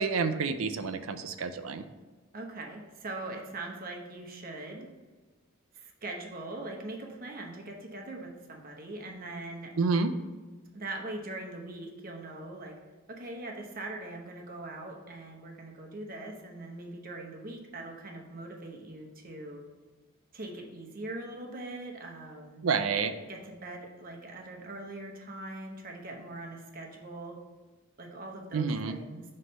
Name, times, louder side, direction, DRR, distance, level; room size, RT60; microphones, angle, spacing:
voice 1, 0.0-1.8 9.8-10.1 22.6-23.1 28.5-29.0, right 5 dB, 70° right, 10 dB, 0.5 m, -29 dB
voice 2, 2.3-4.9 5.7-9.7 10.7-12.8 13.1-19.6 20.3-22.6 23.3-27.4 28.0-29.2, right 2 dB, 40° right, 1 dB, 0.9 m, -41 dB
6.1 x 3.2 x 5.2 m, 1.3 s
head